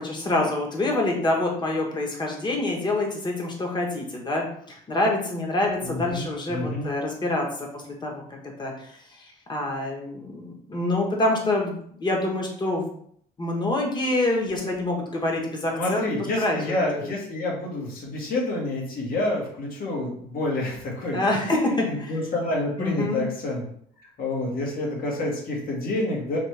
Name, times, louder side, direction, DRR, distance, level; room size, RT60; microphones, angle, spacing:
voice 1, 0.0-12.9 13.4-16.1 16.4-16.6 16.9-17.1 21.1-22.1 22.8-23.3, left 2 dB, 25° left, 0 dB, 1.2 m, -26 dB
voice 2, 5.8-6.9 15.7-21.2 21.8-23.6 24.2-26.4, left 2 dB, 60° left, -1 dB, 1.6 m, -28 dB
4.1 x 3.1 x 3.3 m, 0.63 s
cardioid pair, 110°, 17 cm